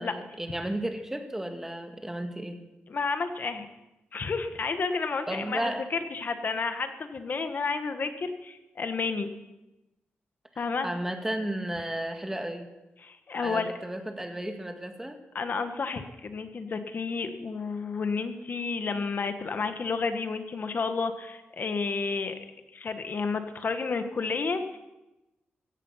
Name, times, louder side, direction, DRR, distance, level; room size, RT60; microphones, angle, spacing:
voice 1, 0.0-2.6 5.3-5.8 10.8-12.7 13.4-15.2, right 1 dB, 10° right, 5 dB, 2.0 m, -33 dB
voice 2, 2.9-3.7 4.1-9.3 10.6-10.9 13.0-13.7 15.3-22.3 22.7-24.6, left 4 dB, 50° left, 8 dB, 1.5 m, -31 dB
16.0 x 15.0 x 5.8 m, 0.99 s
wide cardioid pair, 100°, 4 cm